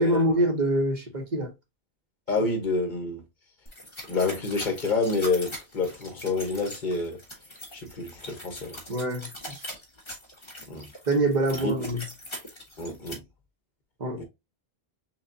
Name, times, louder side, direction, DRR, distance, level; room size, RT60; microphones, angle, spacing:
voice 1, 0.0-1.5 8.9-9.6 11.1-12.0 14.0-14.2, right 1 dB, 50° right, 1.1 m, -25 dB
voice 2, 2.3-3.2 4.1-7.2 7.7-8.8 10.7-10.9 11.5-11.7 12.8-13.2 14.2-14.3, left 3 dB, 50° left, 1.1 m, -28 dB
sound 1, 3.7-13.1, left 1 dB, 30° left, 1.1 m, -42 dB
6.0 x 2.4 x 2.6 m
omnidirectional pair, 1.0 m